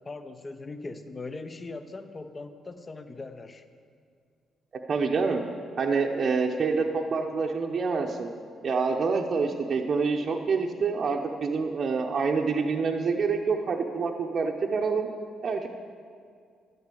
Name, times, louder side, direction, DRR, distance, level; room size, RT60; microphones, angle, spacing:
voice 1, 0.0-3.6, left 3 dB, 30° left, 9 dB, 0.8 m, -40 dB
voice 2, 4.9-5.4 5.8-8.3 8.6-15.1 15.4-15.7, right 4 dB, 50° right, 1 dB, 0.8 m, -27 dB
11.0 x 8.2 x 6.8 m, 2.2 s
cardioid pair, 90°, 0 cm